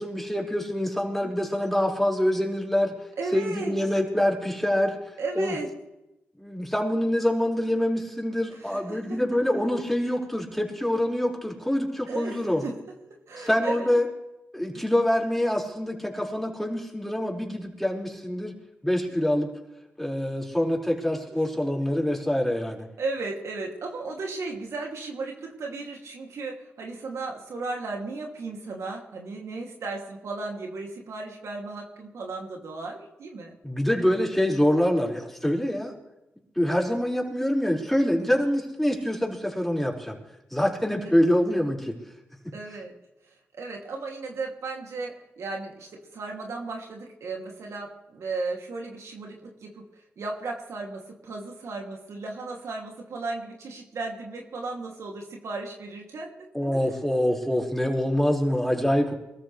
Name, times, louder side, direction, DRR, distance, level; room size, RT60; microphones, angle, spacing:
voice 1, 0.0-2.9 3.3-5.0 5.4-5.5 6.4-12.6 13.4-14.1 14.5-18.5 18.8-19.5 20.0-22.9 33.6-35.9 36.6-40.2 40.5-41.9 42.4-42.5 56.5-59.1, left 1 dB, 5° left, -2 dB, 5.3 m, -25 dB
voice 2, 3.1-3.7 5.2-5.7 8.5-9.2 12.1-12.8 13.3-13.9 14.7-14.8 19.1-19.3 21.3-21.4 23.0-33.5 41.1-41.2 42.5-42.9 43.2-56.3, right 3 dB, 75° right, 0 dB, 2.8 m, -35 dB
23.5 x 14.0 x 3.4 m, 0.95 s
supercardioid pair, 50°, 5 cm